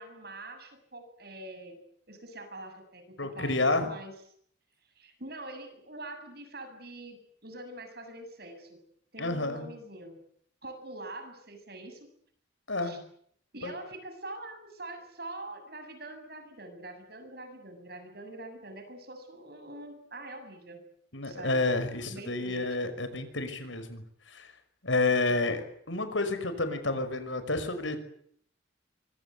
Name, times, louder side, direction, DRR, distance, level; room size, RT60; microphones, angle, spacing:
voice 1, 0.0-1.8 2.1-4.1 5.0-8.8 9.1-10.2 10.6-12.1 12.8-13.0 13.5-20.8 21.2-21.6 22.1-23.0 25.2-25.5, right 2 dB, 55° right, 7 dB, 7.3 m, -44 dB
voice 2, 3.2-3.9 9.2-9.7 12.7-13.0 13.6-13.7 21.1-24.5 24.8-28.0, left 2 dB, 80° left, 10 dB, 5.7 m, -30 dB
25.0 x 24.0 x 8.3 m, 0.66 s
head